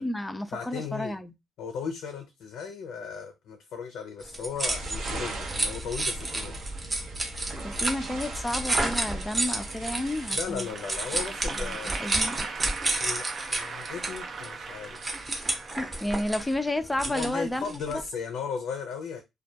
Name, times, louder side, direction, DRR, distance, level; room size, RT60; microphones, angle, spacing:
voice 1, 0.0-1.3 7.6-10.7 11.5-12.4 15.8-18.0, left 1 dB, 10° left, 0.3 m, -31 dB
voice 2, 0.5-1.2 1.6-6.5 10.3-11.9 12.9-15.0 17.0-19.2, left 6 dB, 80° left, 0.4 m, -36 dB
sound 1, 4.2-18.1, right 2 dB, 25° right, 0.7 m, -31 dB
sound 2, 4.7-10.4, right 2 dB, 85° right, 0.7 m, -38 dB
Applause / Crowd, 10.5-16.8, right 4 dB, 55° right, 0.4 m, -39 dB
2.2 x 2.1 x 2.7 m
cardioid pair, 90°, 0 cm